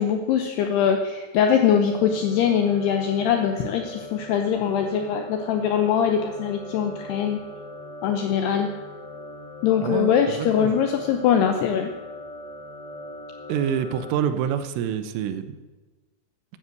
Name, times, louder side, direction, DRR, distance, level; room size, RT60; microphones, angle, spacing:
voice 1, 0.0-7.4 8.0-8.7 9.6-11.9, left 8 dB, 85° left, 5 dB, 2.4 m, -22 dB
sound 1, 1.8-14.1, left 2 dB, 40° left, 5.1 m, -40 dB
voice 2, 9.8-10.8 13.5-15.5, right 9 dB, 85° right, 11 dB, 3.4 m, -26 dB
13.5 x 10.5 x 7.9 m, 1.2 s
omnidirectional pair, 5.7 m